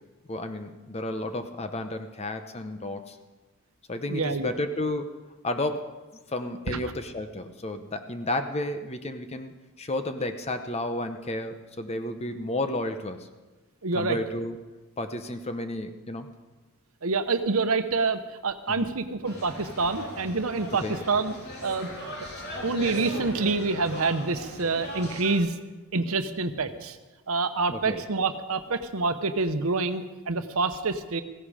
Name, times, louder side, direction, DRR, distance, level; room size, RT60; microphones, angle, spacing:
voice 1, 0.3-3.2 3.9-5.1 5.4-5.9 6.3-13.3 13.9-14.6 15.0-16.3 18.8-18.9 20.8-21.0 27.7-28.0, left 1 dB, 30° left, 8 dB, 0.8 m, -32 dB
voice 2, 4.1-4.5 6.7-6.8 13.8-14.2 17.0-21.3 21.6-21.9 22.6-25.5 25.9-27.0 27.3-31.2, right 3 dB, 80° right, 9 dB, 0.9 m, -27 dB
sound 1, 19.2-25.4, left 1 dB, 50° left, 3.3 m, -38 dB
16.0 x 16.0 x 5.0 m, 1.2 s
head